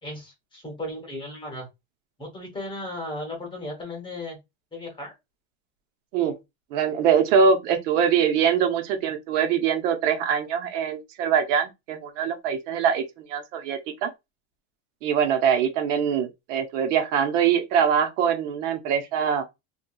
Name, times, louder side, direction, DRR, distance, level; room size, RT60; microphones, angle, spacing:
voice 1, 0.0-1.7 2.2-4.4 4.7-5.1, left 1 dB, 15° left, 0.9 m, -35 dB
voice 2, 6.7-13.0 13.3-14.1 15.0-19.4, right 7 dB, 90° right, 0.9 m, -23 dB
2.8 x 2.3 x 2.3 m
cardioid pair, 155°, 36 cm